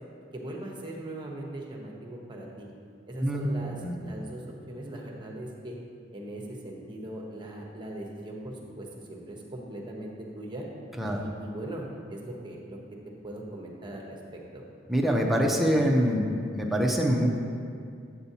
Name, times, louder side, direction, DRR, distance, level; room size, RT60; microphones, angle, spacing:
voice 1, 0.3-2.7 3.1-3.8 4.0-4.4 4.7-5.8 6.1-10.6 11.0-12.8 13.2-14.4, right 1 dB, 25° right, -1 dB, 1.0 m, -39 dB
voice 2, 14.9-16.2 16.6-17.3, equal, ahead, -1 dB, 0.6 m, -24 dB
8.6 x 7.9 x 2.8 m, 2.3 s
head